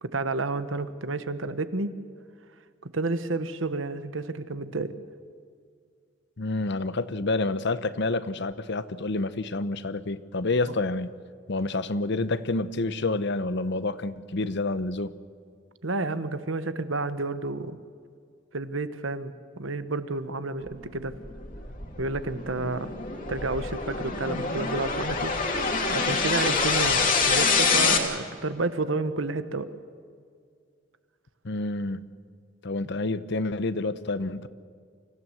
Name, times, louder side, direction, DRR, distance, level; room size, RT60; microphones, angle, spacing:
voice 1, 0.0-1.9 2.8-4.9 15.8-17.8 18.5-21.1 22.0-22.9 23.3-25.3 25.9-29.7 32.8-32.9, right 3 dB, 75° right, 12 dB, 1.2 m, -30 dB
voice 2, 6.4-11.2 11.5-15.1 31.4-32.0 32.6-34.5, left 2 dB, 60° left, 14 dB, 0.9 m, -28 dB
sound 1, 21.0-28.0, left 4 dB, 45° left, 2.6 m, -26 dB
26.0 x 16.0 x 7.8 m, 2.1 s
head